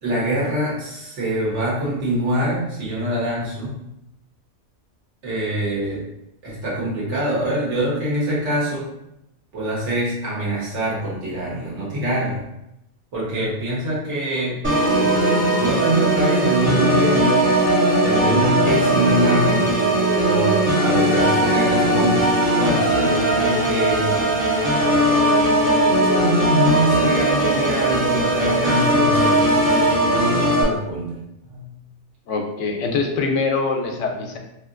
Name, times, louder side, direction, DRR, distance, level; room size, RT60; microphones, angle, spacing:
voice 1, 0.0-3.8 5.2-6.0 6.4-8.9 9.5-12.4 13.1-14.6 15.6-17.5 18.0-19.8 20.2-24.3 26.0-31.2 31.4-31.7 33.9-34.0, right 1 dB, 80° right, -6 dB, 1.4 m, -24 dB
Organ, 14.6-30.6, right 1 dB, 20° right, 0.3 m, -18 dB
voice 2, 32.3-34.4, left 4 dB, 85° left, 3 dB, 0.9 m, -23 dB
2.9 x 2.8 x 2.5 m, 0.86 s
omnidirectional pair, 1.2 m